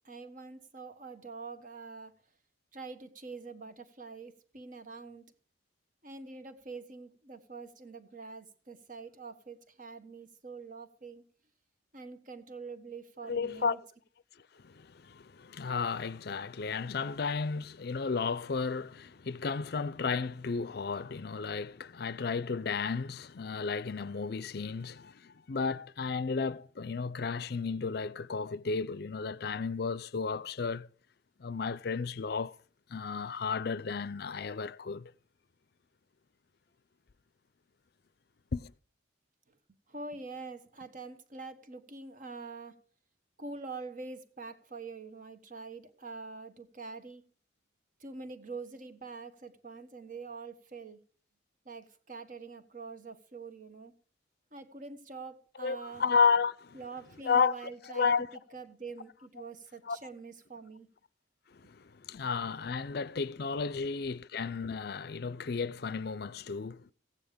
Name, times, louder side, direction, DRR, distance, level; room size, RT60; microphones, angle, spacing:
voice 1, 0.0-2.2 2.7-5.3 6.0-11.3 11.9-13.8 39.9-42.8 43.4-47.2 48.0-51.0 51.6-53.9 54.5-56.0 56.7-58.1 58.5-60.9, right 4 dB, 45° right, 1.3 m, -45 dB
voice 2, 13.3-13.8 14.6-30.9 31.4-32.6 32.9-35.1 38.5-38.7 55.6-56.8 57.2-57.5 57.9-58.3 59.9-60.0 61.5-66.9, left 5 dB, 55° left, 0.5 m, -33 dB
15.0 x 9.5 x 5.1 m
head